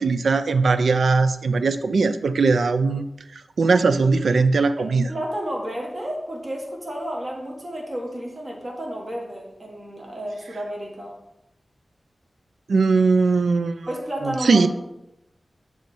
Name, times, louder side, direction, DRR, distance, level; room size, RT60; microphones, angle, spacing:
voice 1, 0.0-3.0 3.6-5.1 12.7-13.9 14.2-14.7, right 4 dB, 90° right, 11 dB, 0.3 m, -19 dB
voice 2, 5.1-11.2 13.9-14.7, equal, 40° right, -1 dB, 1.5 m, -31 dB
6.7 x 3.1 x 5.2 m, 0.91 s
wide cardioid pair, 65°, 0 cm